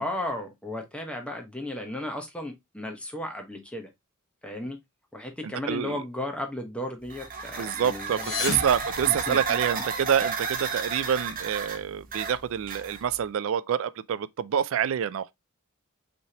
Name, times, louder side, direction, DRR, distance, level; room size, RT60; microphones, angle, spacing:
voice 1, 0.0-3.9 4.4-4.8 5.1-8.5 9.1-9.6, left 1 dB, 5° left, 1.0 m, -35 dB
voice 2, 5.7-6.0 7.6-15.3, right 8 dB, 65° right, 0.3 m, -27 dB
sound 1, 7.1-13.2, right 4 dB, 40° right, 0.9 m, -33 dB
sound 2, 8.0-9.9, left 5 dB, 80° left, 1.0 m, -34 dB
5.4 x 3.3 x 2.8 m
head